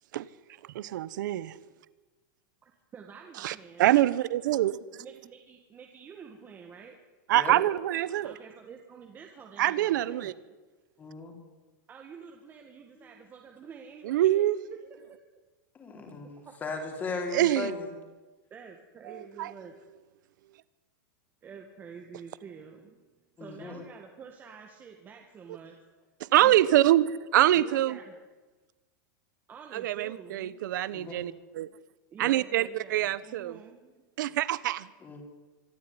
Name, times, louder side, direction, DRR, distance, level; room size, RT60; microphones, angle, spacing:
voice 1, 0.7-1.6 3.4-4.8 7.3-8.3 9.6-10.3 14.0-14.5 17.3-17.7 19.4-19.5 26.3-28.0 29.7-31.7 32.2-33.6 34.2-34.9, right 14 dB, 65° right, 18 dB, 1.0 m, -25 dB
voice 2, 2.6-3.9 5.0-7.0 8.1-10.5 11.9-14.6 15.1-15.2 16.4-16.5 18.5-19.8 21.4-23.0 23.4-25.8 26.4-26.7 27.5-28.1 29.5-30.6 32.1-34.1, right 6 dB, 15° right, 2 dB, 1.8 m, -48 dB
voice 3, 11.0-11.4 13.0-13.1 15.7-17.9 23.4-23.8 30.9-31.2 35.0-35.2, left 4 dB, 15° left, 4 dB, 3.7 m, -37 dB
25.0 x 13.0 x 9.8 m, 1.2 s
supercardioid pair, 170°, 11 cm